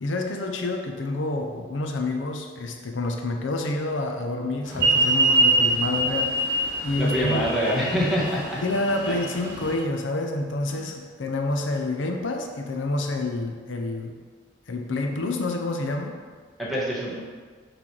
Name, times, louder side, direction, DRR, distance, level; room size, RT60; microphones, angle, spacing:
voice 1, 0.0-6.4 6.8-7.4 8.6-14.1 14.7-16.1, left 2 dB, 75° left, 3 dB, 0.6 m, -28 dB
sound 1, 4.7-9.7, right 2 dB, 15° right, 1.8 m, -23 dB
voice 2, 7.0-8.6 9.1-9.2 10.7-10.9 16.6-17.2, equal, ahead, -8 dB, 1.3 m, -25 dB
6.0 x 3.3 x 5.9 m, 1.5 s
head